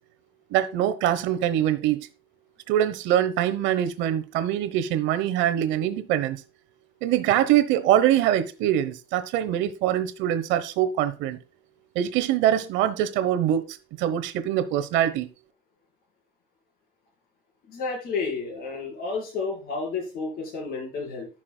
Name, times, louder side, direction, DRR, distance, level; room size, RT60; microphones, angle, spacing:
voice 1, 0.5-2.1 2.7-6.4 7.0-11.4 11.9-15.3, right 11 dB, 75° right, 1.0 m, -23 dB
voice 2, 17.7-21.3, left 4 dB, 50° left, 5.0 m, -31 dB
14.5 x 6.1 x 2.2 m
cardioid pair, 160°, 20 cm